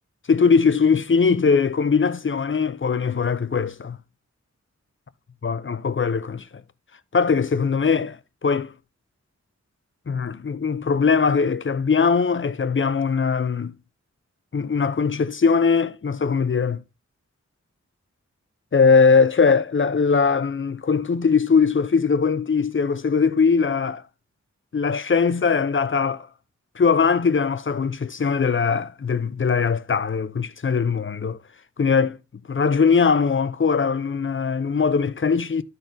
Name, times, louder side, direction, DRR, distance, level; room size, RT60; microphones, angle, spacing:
voice 1, 0.3-4.0 5.4-6.5 7.1-8.7 10.1-13.7 14.5-16.8 18.7-24.0 24.7-26.3 26.8-31.4 31.8-32.2 32.5-35.6, left 5 dB, 45° left, 0.6 m, -20 dB
12.0 x 4.0 x 3.9 m
wide cardioid pair, 55°, 29 cm